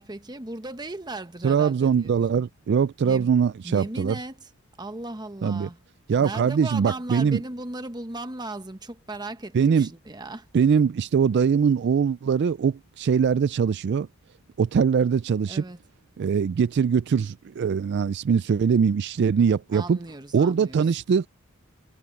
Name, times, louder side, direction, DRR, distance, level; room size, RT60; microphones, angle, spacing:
voice 1, 0.0-2.4 3.0-3.3 3.6-4.5 4.8-5.8 6.2-10.5 15.5-15.8 19.7-20.9, right 2 dB, 20° right, 1.1 m, -37 dB
voice 2, 1.4-4.2 5.4-5.7 6.1-7.4 9.5-9.9 10.5-14.1 14.6-15.6 16.2-20.0 20.3-21.3, right 6 dB, 55° right, 0.3 m, -22 dB
head